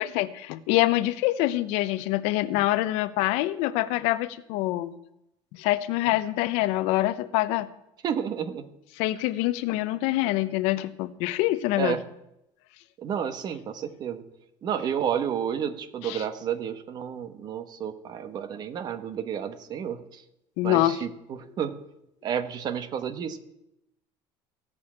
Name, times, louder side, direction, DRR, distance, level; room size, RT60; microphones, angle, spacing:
voice 1, 0.0-5.0 5.5-7.7 9.0-12.0 16.0-16.2 20.6-21.0, left 16 dB, 85° left, 14 dB, 0.8 m, -25 dB
voice 2, 8.0-8.6 11.8-12.0 13.0-14.2 14.6-20.0 20.6-21.1 21.6-21.7 22.2-23.4, right 8 dB, 40° right, 11 dB, 1.1 m, -30 dB
15.5 x 6.3 x 8.7 m, 0.86 s
cardioid pair, 155°, 11 cm